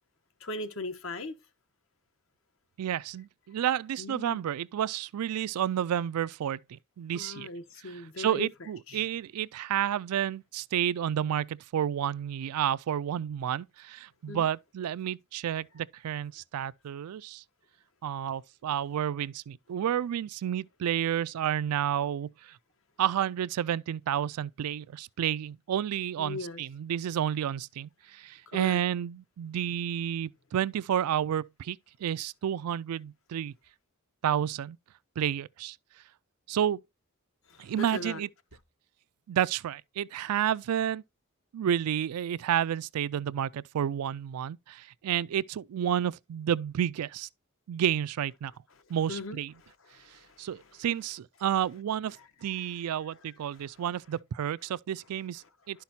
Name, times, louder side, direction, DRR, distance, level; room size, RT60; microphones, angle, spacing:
voice 1, 0.4-1.4 4.0-4.4 7.1-8.5 8.9-9.1 14.3-14.5 26.2-26.6 28.5-28.8 37.5-38.2 49.1-50.5 52.2-52.3 52.5-53.2 53.5-53.7 55.7-55.8, left 2 dB, 65° left, 1.1 m, -40 dB
voice 2, 2.8-7.5 7.9-17.4 18.0-22.6 23.0-33.6 34.2-34.8 35.2-35.8 36.5-36.8 37.6-38.3 39.3-41.0 41.5-47.3 47.7-48.5 48.9-49.5 50.4-55.8, right 10 dB, 90° right, 0.3 m, -30 dB
11.5 x 5.8 x 2.7 m
head